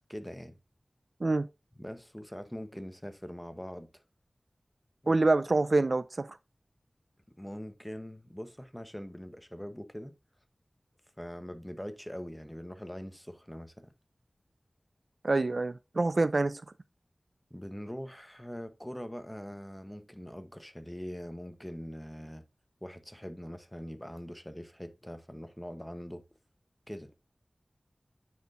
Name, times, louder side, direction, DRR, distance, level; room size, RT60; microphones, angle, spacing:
voice 1, 0.1-0.6 1.8-3.9 5.0-5.2 7.4-10.2 11.2-13.9 17.5-22.4 22.8-26.2 26.9-27.1, equal, 10° left, 0.9 m, -42 dB
voice 2, 5.1-6.3 15.2-16.6, right 2 dB, 65° right, 0.3 m, -26 dB
9.4 x 4.4 x 2.5 m
wide cardioid pair, 50°, 0 cm